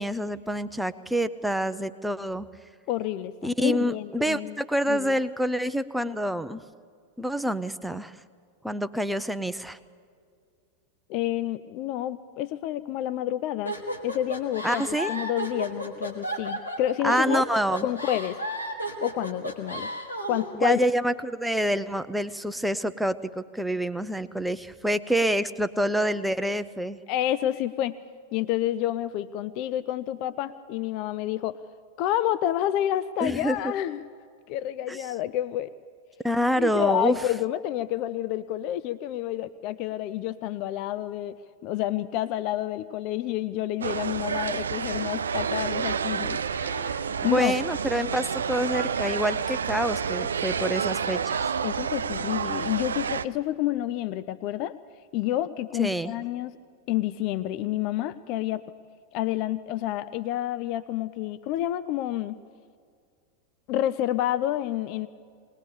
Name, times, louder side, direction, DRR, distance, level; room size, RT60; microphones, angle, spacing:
voice 1, 0.0-2.5 3.4-6.6 7.2-8.1 8.6-9.8 14.6-15.1 17.0-17.9 20.6-27.0 33.2-33.7 34.9-35.0 36.2-37.2 47.2-51.5 55.8-56.1, equal, ahead, 11 dB, 0.7 m, -27 dB
voice 2, 2.9-4.5 4.9-5.2 11.1-13.7 14.0-17.5 17.8-18.4 19.0-19.9 20.3-20.8 27.1-28.0 28.3-31.6 32.0-34.0 34.5-35.7 36.6-41.4 41.6-47.5 51.6-54.7 55.1-56.5 56.9-58.6 59.1-62.4 63.7-65.1, left 13 dB, 45° left, 14 dB, 0.5 m, -29 dB
sound 1, 13.7-20.5, right 1 dB, 85° left, 2.2 m, -33 dB
sound 2, 43.8-53.2, right 6 dB, 70° right, 0.5 m, -29 dB
21.0 x 19.5 x 7.0 m, 2.1 s
figure-of-eight pair, 90°, 0 cm